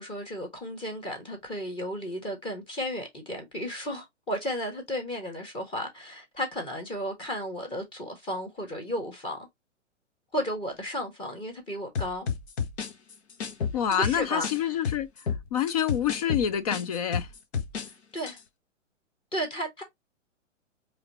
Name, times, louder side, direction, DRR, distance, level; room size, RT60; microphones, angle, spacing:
voice 1, 0.0-9.5 10.3-12.3 13.9-14.8 18.1-18.4 19.3-19.8, equal, 15° left, 1.6 m, -34 dB
sound 1, 11.9-14.6 14.8-17.9 18.2-18.4, left 6 dB, 60° left, 1.1 m, -31 dB
voice 2, 13.7-15.1 15.5-17.3, left 9 dB, 30° left, 0.5 m, -27 dB
4.9 x 3.2 x 2.9 m
figure-of-eight pair, 120°, 38 cm